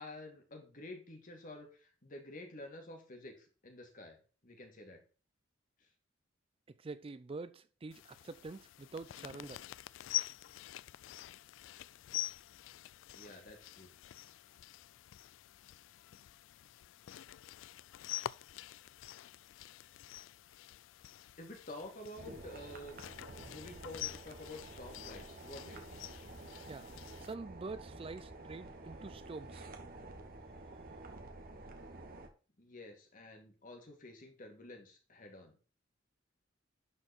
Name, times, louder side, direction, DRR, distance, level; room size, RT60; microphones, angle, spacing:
voice 1, 0.0-4.2 4.4-5.0 13.1-13.9 21.4-23.0 23.5-26.0 32.6-35.6, left 2 dB, 45° left, 2.3 m, -50 dB
voice 2, 6.8-9.6 26.7-29.7, right 3 dB, 30° right, 0.4 m, -46 dB
sound 1, 7.9-27.3, left 13 dB, 75° left, 0.3 m, -46 dB
sound 2, 22.2-32.3, right 2 dB, 50° right, 1.4 m, -50 dB
11.5 x 4.5 x 4.4 m
head